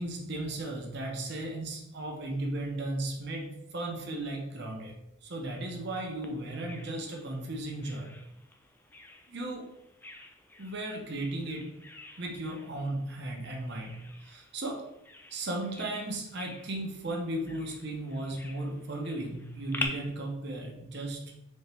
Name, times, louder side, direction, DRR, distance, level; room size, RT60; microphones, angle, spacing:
voice 1, 0.0-3.5 3.7-4.9 5.2-8.1 9.3-9.6 10.6-11.7 12.2-14.0 14.2-14.8 15.3-21.2, right 1 dB, 55° right, 1 dB, 0.9 m, -35 dB
Bird vocalization bird call bird song, 6.2-19.9, left 2 dB, 10° left, 0.4 m, -47 dB
4.3 x 3.5 x 3.4 m, 0.83 s
head